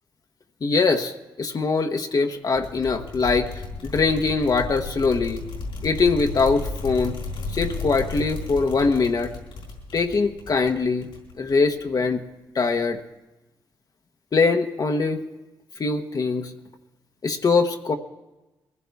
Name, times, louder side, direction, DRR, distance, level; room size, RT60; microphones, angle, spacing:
voice 1, 0.6-5.4 5.8-7.2 7.5-9.3 9.9-11.1 11.4-12.2 12.5-13.0 14.3-15.2 15.8-16.5 17.2-17.9, left 4 dB, 50° left, 4 dB, 1.1 m, -22 dB
sound 1, 2.6-11.8, left 3 dB, 85° left, 4.3 m, -34 dB
22.0 x 15.5 x 3.5 m, 1.1 s
cardioid pair, 70°, 9 cm